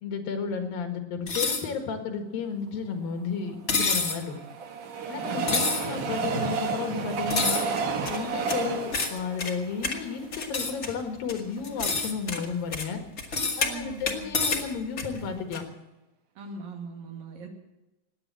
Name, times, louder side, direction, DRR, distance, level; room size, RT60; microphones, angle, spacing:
voice 1, 0.0-4.4 5.1-7.6 8.1-13.0 13.6-15.6, left 5 dB, 80° left, 5 dB, 3.6 m, -33 dB
sound 1, 1.3-1.6 3.7-4.2 5.5-5.9 7.3-7.6 8.9-9.2 10.5-10.7 11.6-12.1 13.3-13.6 14.3-14.6, left 4 dB, 60° left, 0.7 m, -27 dB
Train, 3.5-10.8 11.3-11.4 11.6-11.7, right 4 dB, 65° right, 2.9 m, -31 dB
voice 2, 5.2-5.7 13.6-14.3 16.4-17.5, right 3 dB, 80° right, 2 dB, 4.1 m, -40 dB
sound 2, 7.8-15.6, left 4 dB, 35° left, 1.4 m, -35 dB
18.0 x 9.8 x 7.6 m, 1.0 s
omnidirectional pair, 4.1 m